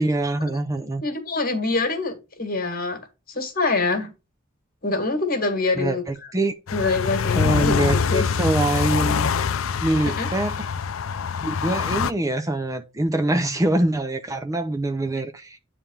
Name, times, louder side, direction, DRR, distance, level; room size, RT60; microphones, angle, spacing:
voice 1, 0.0-1.0 5.8-6.5 7.3-9.3 9.8-10.7 11.4-15.6, right 1 dB, 15° right, 0.5 m, -24 dB
voice 2, 1.0-3.0 3.3-4.1 4.8-6.0 6.7-8.2 10.0-10.3, left 3 dB, 45° left, 1.9 m, -25 dB
sound 1, 6.7-12.1, left 6 dB, 70° left, 0.5 m, -24 dB
9.1 x 3.4 x 5.5 m
head